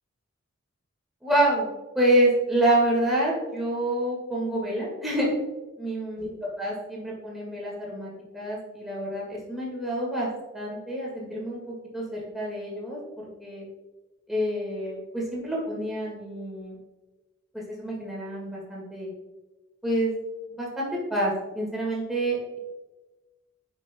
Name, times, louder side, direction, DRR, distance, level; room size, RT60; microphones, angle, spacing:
voice 1, 1.2-5.3 5.8-6.3 6.6-13.6 14.3-16.8 17.5-19.1 19.8-20.1 20.5-22.6, right 1 dB, ahead, -5 dB, 1.7 m, -27 dB
8.1 x 5.2 x 2.2 m, 1.1 s
head